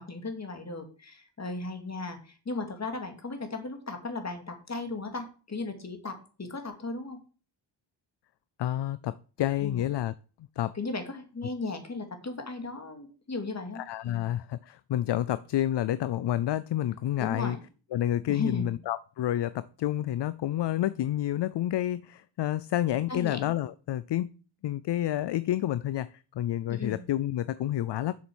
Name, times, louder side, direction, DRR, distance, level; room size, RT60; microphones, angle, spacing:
voice 1, 0.0-7.2 9.6-9.8 10.7-14.3 17.2-17.6 18.3-18.8 23.1-23.5 26.7-27.0, left 3 dB, 35° left, 2.6 m, -36 dB
voice 2, 8.6-10.1 10.6-10.8 13.8-17.6 17.9-24.3 24.6-26.1 26.4-28.1, left 12 dB, 65° left, 0.6 m, -29 dB
7.7 x 6.9 x 6.3 m
cardioid pair, 90°, 46 cm